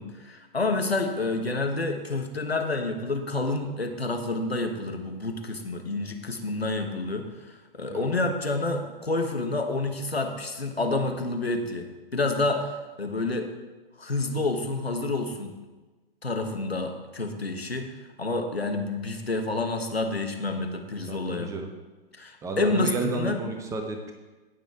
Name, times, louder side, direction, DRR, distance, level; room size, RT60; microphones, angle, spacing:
voice 1, 0.0-13.5 14.0-15.5 16.2-17.9 18.2-21.5 22.2-23.4, left 2 dB, 90° left, 5 dB, 1.3 m, -29 dB
voice 2, 7.9-8.3 21.1-21.7 22.4-24.1, right 4 dB, 10° right, 4 dB, 0.7 m, -32 dB
16.5 x 6.3 x 3.6 m, 1.2 s
figure-of-eight pair, 120°, 30 cm